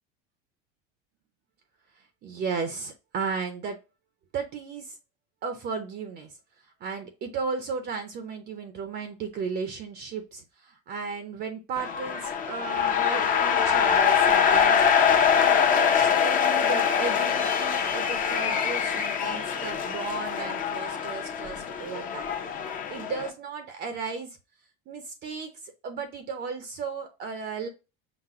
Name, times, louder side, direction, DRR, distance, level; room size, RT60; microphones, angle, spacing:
voice 1, 2.2-3.8 4.3-5.0 5.4-6.4 6.8-14.9 15.3-22.3 22.9-24.4 24.9-27.7, right 5 dB, 35° right, 7 dB, 0.6 m, -35 dB
sound 1, 11.8-23.3, left 7 dB, 30° left, 0.6 m, -24 dB
5.9 x 2.1 x 3.6 m, 0.28 s
cardioid pair, 150°, 29 cm